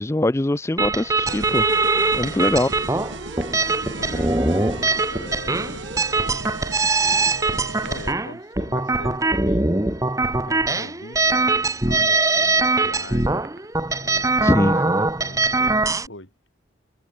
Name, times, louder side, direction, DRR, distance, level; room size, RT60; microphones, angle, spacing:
voice 1, 0.0-1.7 2.2-2.7 14.4-14.8, left 1 dB, 15° left, 0.4 m, -21 dB
sound 1, 0.8-16.1, right 3 dB, 15° right, 1.1 m, -22 dB
sound 2, 1.3-8.2, right 3 dB, 85° right, 3.4 m, -36 dB
sound 3, 3.4-4.0 4.7-5.3 6.2-6.8 7.6-8.4 9.2-10.1 11.2-11.8 13.2-13.8 15.1-16.0, right 4 dB, 65° right, 4.7 m, -47 dB
voice 2, 4.0-5.8 7.0-7.4 7.8-13.7 14.0-16.3, left 2 dB, 85° left, 7.2 m, -42 dB
head